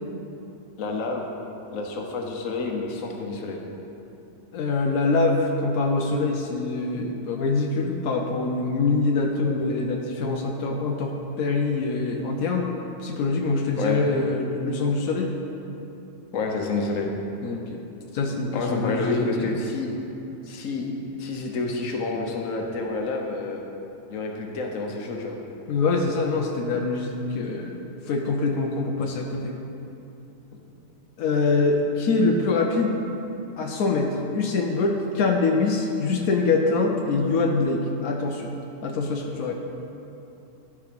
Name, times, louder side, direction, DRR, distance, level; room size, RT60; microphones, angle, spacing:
voice 1, 0.8-1.4 1.7-3.6 13.8-14.0 16.3-17.1 18.5-19.9 20.5-20.9 21.2-23.6 24.1-25.4, left 3 dB, 70° left, 1 dB, 1.3 m, -29 dB
voice 2, 4.5-12.7 13.0-15.3 17.4-17.8 18.1-19.6 25.7-29.5 31.2-33.1 33.6-38.5 38.8-39.5, left 3 dB, 90° left, 2 dB, 1.1 m, -24 dB
11.5 x 4.8 x 5.1 m, 2.9 s
omnidirectional pair, 1.4 m